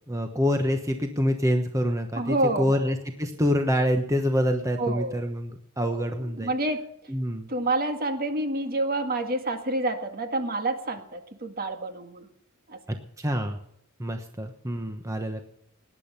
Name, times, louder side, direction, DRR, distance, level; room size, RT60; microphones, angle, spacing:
voice 1, 0.1-6.5 7.1-7.5 12.9-13.6 14.0-15.4, equal, 15° right, 5 dB, 1.1 m, -26 dB
voice 2, 2.2-2.9 4.8-5.2 5.8-6.9 7.5-12.3 12.7-12.8, right 2 dB, 45° right, 6 dB, 1.8 m, -28 dB
19.0 x 10.5 x 5.7 m, 0.76 s
head